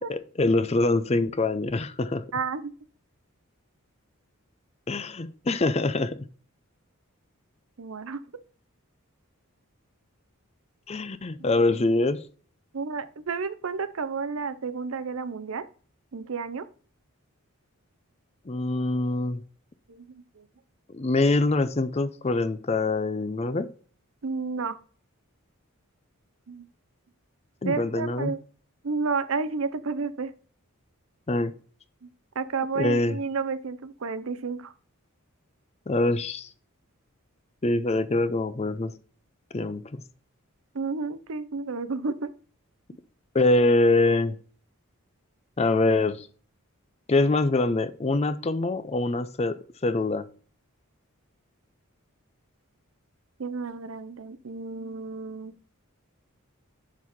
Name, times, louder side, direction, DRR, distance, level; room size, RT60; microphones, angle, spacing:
voice 1, 0.1-2.2 4.9-6.2 10.9-12.3 18.5-19.4 20.9-23.7 27.6-28.3 31.3-31.5 32.8-33.2 35.9-36.5 37.6-38.9 39.5-39.8 43.3-44.4 45.6-46.3 47.1-49.6 49.8-50.3, left 2 dB, 30° left, 0.5 m, -24 dB
voice 2, 2.3-2.7 7.8-8.2 12.7-15.7 16.1-16.7 19.9-20.5 24.2-24.8 26.5-26.7 27.6-28.4 28.8-30.3 32.0-32.1 32.4-34.7 40.7-42.3 53.4-55.5, right 4 dB, 65° right, 0.6 m, -31 dB
11.0 x 4.1 x 4.2 m
head